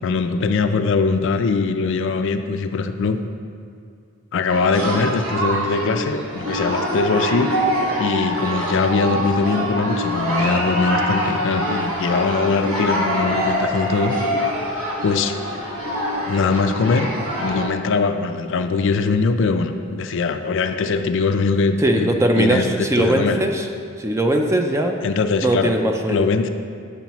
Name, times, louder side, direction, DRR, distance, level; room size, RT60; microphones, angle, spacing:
voice 1, 0.0-3.2 4.3-7.5 8.0-14.2 15.0-15.3 16.3-17.1 17.4-22.1 22.4-23.4 25.0-25.7 26.1-26.5, left 4 dB, 60° left, 8 dB, 0.3 m, -21 dB
sound 1, 4.5-17.6, equal, 75° right, 1.3 m, -24 dB
voice 2, 21.8-23.7 24.0-25.0 25.4-26.2, right 1 dB, 15° right, 3 dB, 0.4 m, -20 dB
8.1 x 7.0 x 3.0 m, 2.3 s
head